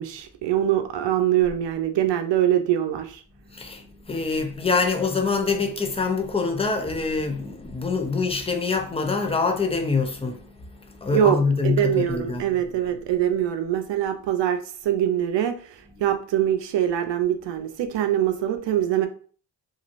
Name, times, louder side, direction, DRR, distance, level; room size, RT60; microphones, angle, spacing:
voice 1, 0.0-3.2 11.1-11.4 11.6-19.1, right 11 dB, 80° right, 0.6 m, -23 dB
voice 2, 3.5-12.5 16.0-16.1, left 4 dB, 15° left, 0.4 m, -25 dB
3.0 x 2.5 x 2.5 m
cardioid pair, 100°, 43 cm